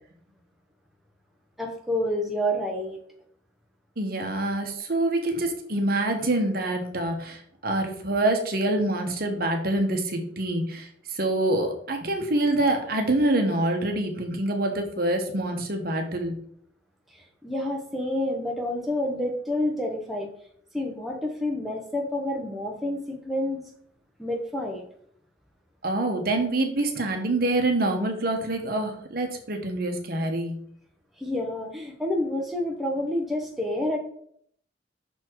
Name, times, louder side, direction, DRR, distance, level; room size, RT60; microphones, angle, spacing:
voice 1, 1.6-3.0 17.1-20.3 20.7-23.6 24.2-24.8 31.2-34.0, left 1 dB, ahead, 0 dB, 0.8 m, -28 dB
voice 2, 4.0-16.3 25.8-30.6, right 2 dB, 50° right, 4 dB, 1.1 m, -26 dB
6.2 x 4.3 x 4.5 m, 0.63 s
head